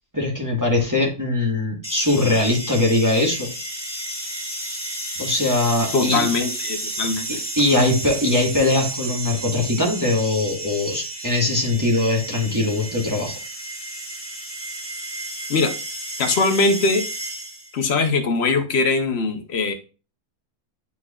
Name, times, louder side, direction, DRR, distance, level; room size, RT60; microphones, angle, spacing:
voice 1, 0.1-3.5 5.2-6.3 7.6-13.4, left 2 dB, 15° right, -2 dB, 1.4 m, -21 dB
sound 1, 1.8-17.8, right 1 dB, 10° left, 2.4 m, -32 dB
voice 2, 5.9-7.3 15.5-15.7 16.2-17.1 17.7-19.7, left 3 dB, 50° left, 7 dB, 1.0 m, -21 dB
9.6 x 4.6 x 2.3 m, 0.33 s
omnidirectional pair, 1.6 m